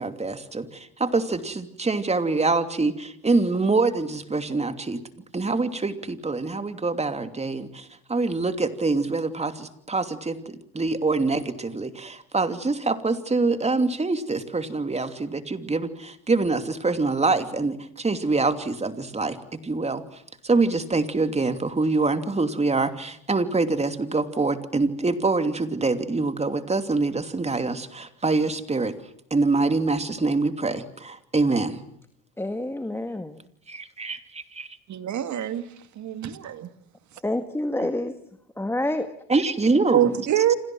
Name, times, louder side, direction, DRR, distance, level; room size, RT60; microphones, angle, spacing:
voice 1, 0.0-5.0 5.3-28.9 29.3-31.8 33.7-34.7 39.3-40.1, right 3 dB, 20° right, 9 dB, 2.8 m, -25 dB
voice 2, 32.4-33.4 37.2-38.1 38.6-39.1, left 1 dB, 5° left, 9 dB, 1.8 m, -28 dB
voice 3, 34.9-35.7 36.0-36.7 37.8-37.9 39.9-40.5, right 11 dB, 55° right, 10 dB, 2.4 m, -25 dB
30.0 x 26.0 x 6.2 m, 0.67 s
supercardioid pair, 95°, 35 cm